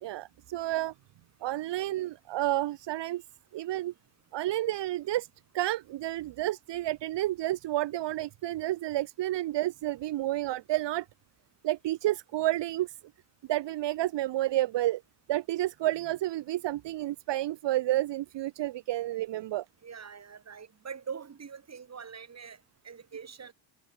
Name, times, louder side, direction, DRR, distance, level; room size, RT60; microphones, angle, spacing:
voice 1, 0.0-0.9 1.4-3.2 3.5-3.9 4.3-5.3 5.5-11.1 11.6-13.0 13.5-15.0 15.3-19.6, right 15 dB, 60° right, 1.2 m, -30 dB
voice 2, 19.8-23.5, right 6 dB, 35° right, 5.6 m, -43 dB
cardioid pair, 120°, 47 cm